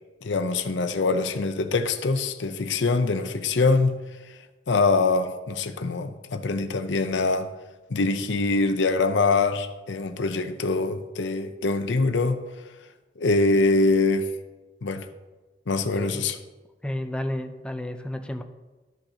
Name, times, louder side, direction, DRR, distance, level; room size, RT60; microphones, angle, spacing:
voice 1, 0.2-3.9 4.7-7.5 7.9-12.4 13.2-14.3 14.8-15.0 15.7-16.4, left 3 dB, 90° left, 0.6 m, -24 dB
voice 2, 15.9-16.2 16.8-18.4, left 1 dB, 5° left, 0.5 m, -32 dB
13.5 x 5.4 x 2.8 m
head